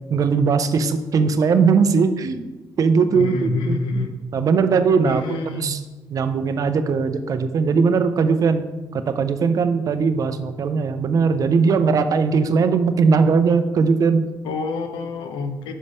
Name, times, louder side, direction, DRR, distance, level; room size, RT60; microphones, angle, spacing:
voice 1, 0.1-2.5 2.8-3.8 4.3-5.8 6.1-8.6 8.9-14.3, right 5 dB, 45° right, 9 dB, 0.6 m, -19 dB
voice 2, 3.1-4.2 5.0-5.8 14.4-15.7, left 3 dB, 85° left, 7 dB, 0.8 m, -27 dB
5.5 x 5.1 x 5.4 m, 1.2 s
cardioid pair, 120°, 8 cm